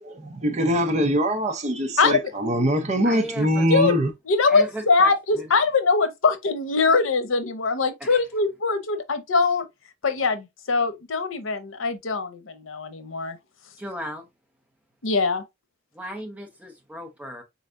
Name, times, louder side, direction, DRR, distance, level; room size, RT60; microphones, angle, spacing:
voice 1, 0.0-4.1, equal, 35° right, 0.7 m, -23 dB
voice 2, 2.0-2.3 3.7-3.9 4.3-9.7 10.0-13.4 15.0-15.4, left 4 dB, 90° left, 0.8 m, -22 dB
voice 3, 3.0-3.7 4.5-5.5 6.9-7.0 8.0-8.2 13.8-14.3 15.9-17.4, equal, 10° right, 1.0 m, -36 dB
4.0 x 3.2 x 2.5 m
head